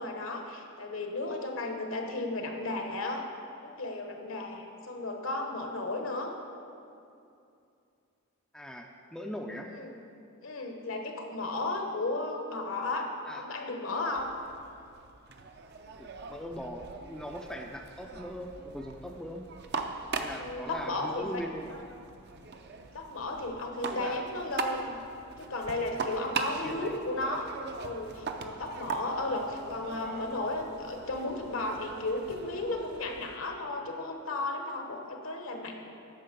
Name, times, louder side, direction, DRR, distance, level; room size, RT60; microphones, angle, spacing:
voice 1, 0.0-3.3 3.6-6.3 9.7-10.0 10.4-14.3 20.3-21.4 22.9-25.0 25.4-27.5 27.8-35.7, left 2 dB, 70° left, 3 dB, 1.1 m, -34 dB
voice 2, 8.5-9.7 13.2-13.4 16.0-19.5 20.2-21.8 23.9-24.3 26.2-26.3 26.6-26.9 30.0-30.4, equal, 5° left, 2 dB, 0.4 m, -41 dB
sound 1, 14.1-33.4, right 4 dB, 50° right, 0.6 m, -41 dB
9.4 x 6.0 x 6.7 m, 2.6 s
head